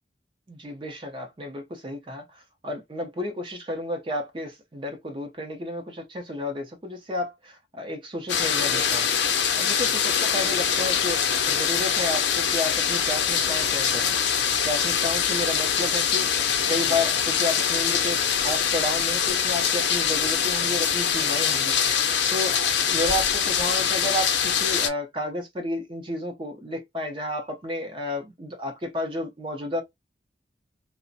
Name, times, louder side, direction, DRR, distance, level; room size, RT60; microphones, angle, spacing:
voice 1, 0.5-9.1 9.6-14.1 14.6-16.3 16.7-22.0 22.3-29.8, left 1 dB, 30° right, 0.5 m, -32 dB
sound 1, 8.3-24.9, left 7 dB, 85° left, 0.5 m, -23 dB
2.4 x 2.0 x 2.6 m
head